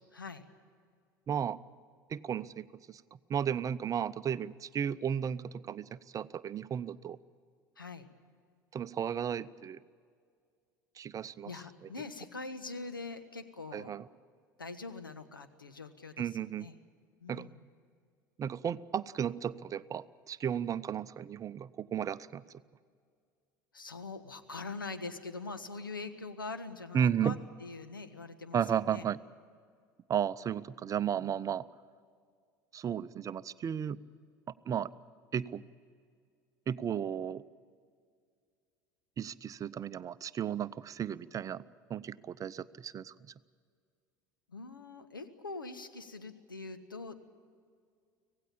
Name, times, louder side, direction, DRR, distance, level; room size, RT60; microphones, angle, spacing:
voice 1, 0.1-0.4 7.8-8.1 11.5-13.9 14.6-16.3 16.6-16.8 17.2-17.6 23.7-27.4 27.6-28.6 28.9-29.0 44.5-47.2, left 3 dB, 90° left, 9 dB, 1.3 m, -43 dB
voice 2, 1.3-1.6 2.1-3.0 3.3-7.2 8.7-9.8 11.0-11.5 11.8-11.9 13.7-14.1 16.2-16.7 17.3-17.4 18.4-22.4 26.9-27.4 28.5-29.2 30.1-31.7 32.7-34.0 34.7-34.9 35.3-35.6 36.7-37.4 39.2-41.6 41.9-43.3, right 8 dB, 30° right, 16 dB, 0.7 m, -34 dB
25.5 x 17.0 x 8.7 m, 2.1 s
figure-of-eight pair, 70°, 11 cm